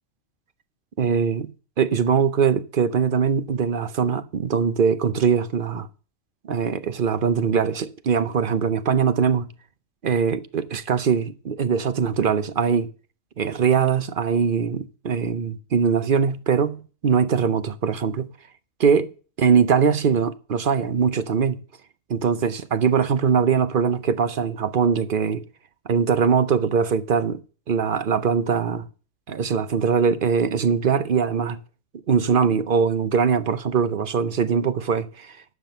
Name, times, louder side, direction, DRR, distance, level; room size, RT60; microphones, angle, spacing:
voice 1, 1.0-1.5 1.8-5.9 6.4-9.5 10.0-12.9 13.4-18.3 18.8-19.1 19.4-21.6 22.1-25.4 25.9-27.4 27.7-28.8 29.3-31.6 32.1-35.4, right 6 dB, 50° right, 0.8 m, -22 dB
11.5 x 7.6 x 6.6 m
omnidirectional pair, 1.3 m